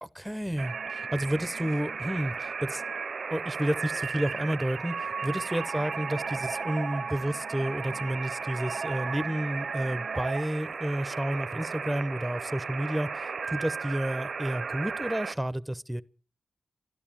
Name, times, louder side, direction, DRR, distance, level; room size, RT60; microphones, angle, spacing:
voice 1, 0.0-2.8 3.3-16.0, right 1 dB, 5° right, 0.7 m, -31 dB
sound 1, 0.6-15.3, right 5 dB, 65° right, 0.6 m, -35 dB
13.5 x 12.0 x 8.7 m
wide cardioid pair, 120°, 0 cm